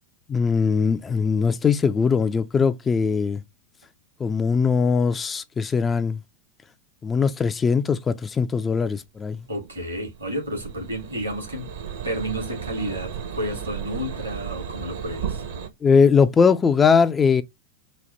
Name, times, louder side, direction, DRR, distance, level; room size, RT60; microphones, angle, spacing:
voice 1, 0.3-3.4 4.2-6.2 7.0-9.4 15.8-17.4, left 5 dB, 20° left, 0.3 m, -20 dB
voice 2, 9.5-11.7 12.0-15.4, equal, 80° right, 2.1 m, -31 dB
sound 1, 9.6-15.7, right 8 dB, 60° right, 0.9 m, -34 dB
4.1 x 2.2 x 3.2 m
figure-of-eight pair, 90°, 0 cm